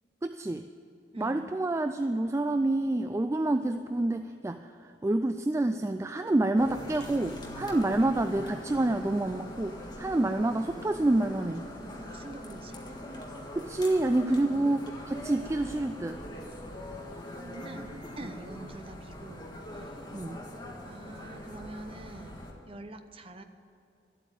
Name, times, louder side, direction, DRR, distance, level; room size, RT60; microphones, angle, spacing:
voice 1, 0.2-0.7 1.2-11.7 13.5-14.8 15.0-16.2 20.1-20.4, right 2 dB, 15° right, 8 dB, 0.3 m, -28 dB
voice 2, 1.1-1.5 11.9-12.8 14.3-14.8 16.8-16.9 17.3-17.9 18.2-20.2 20.8-22.4 22.7-23.4, right 2 dB, 30° right, 8 dB, 0.8 m, -45 dB
sound 1, 6.6-22.5, left 1 dB, 25° left, 1.7 m, -42 dB
13.0 x 8.3 x 9.0 m, 2.7 s
head